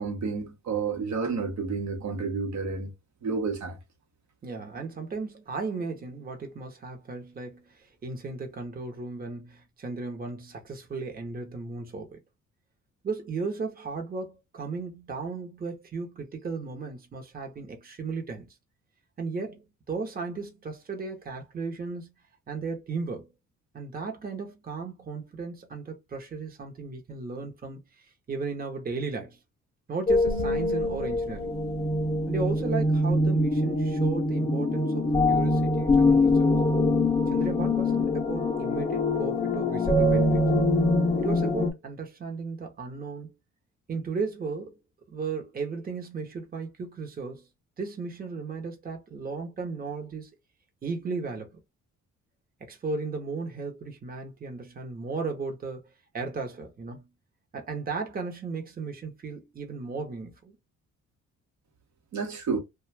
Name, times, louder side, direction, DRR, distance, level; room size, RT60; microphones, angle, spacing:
voice 1, 0.0-2.9 3.2-3.8 62.1-62.6, right 4 dB, 65° right, 0.9 m, -30 dB
voice 2, 4.4-12.2 13.0-18.5 19.2-22.1 22.5-23.3 23.7-29.4 29.9-31.5 32.3-36.5 37.3-40.5 41.2-43.3 43.9-44.8 45.1-47.5 47.8-50.3 50.8-51.6 52.6-57.1 57.5-60.6, right 4 dB, 30° right, 0.9 m, -35 dB
sound 1, 30.1-41.7, left 2 dB, 20° left, 0.6 m, -24 dB
2.4 x 2.3 x 3.2 m
cardioid pair, 90°, 30 cm